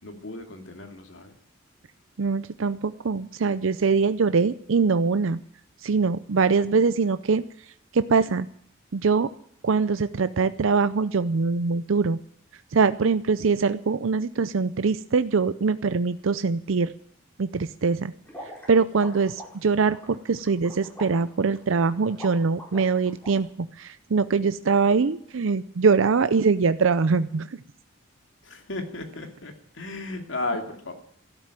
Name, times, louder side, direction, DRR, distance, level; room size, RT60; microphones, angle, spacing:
voice 1, 0.0-1.3 28.4-30.9, left 2 dB, 65° left, 6 dB, 2.5 m, -34 dB
voice 2, 2.2-5.4 5.8-7.4 7.9-8.5 8.9-9.3 9.6-12.2 12.7-16.9 17.4-18.1 18.7-23.5 23.8-27.5, right 4 dB, 75° right, 13 dB, 0.5 m, -23 dB
sound 1, 18.3-23.3, equal, 10° left, 4.9 m, -43 dB
13.0 x 12.0 x 9.0 m, 0.67 s
head